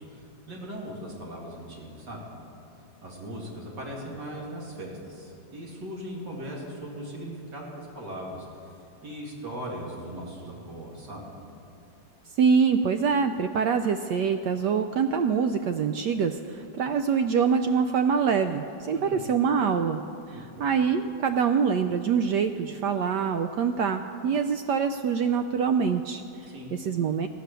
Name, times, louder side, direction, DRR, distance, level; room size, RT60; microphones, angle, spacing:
voice 1, 0.0-2.3 3.0-8.7 9.0-11.3 18.9-19.2 20.3-20.7 26.5-26.7, equal, 60° right, -3 dB, 3.1 m, -39 dB
voice 2, 12.4-20.0 20.3-27.3, right 6 dB, 75° right, 7 dB, 1.0 m, -25 dB
15.5 x 9.0 x 6.8 m, 2.8 s
omnidirectional pair, 2.2 m